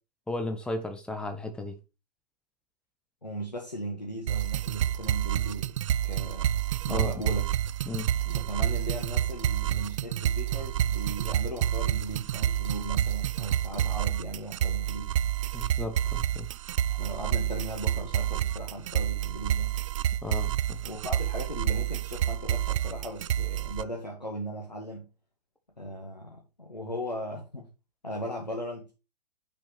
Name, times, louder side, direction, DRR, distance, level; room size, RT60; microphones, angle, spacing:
voice 1, 0.3-1.8 6.9-7.1 7.9-8.1 15.5-16.5 20.2-20.8, left 2 dB, 5° left, 1.2 m, -34 dB
voice 2, 3.2-6.6 6.9-7.5 8.2-15.2 16.9-19.8 20.8-25.1 25.8-27.7 28.0-28.9, equal, 85° left, 1.9 m, -38 dB
sound 1, 4.3-23.8, right 11 dB, 50° right, 0.5 m, -29 dB
8.6 x 6.5 x 3.4 m
figure-of-eight pair, 105°, 21 cm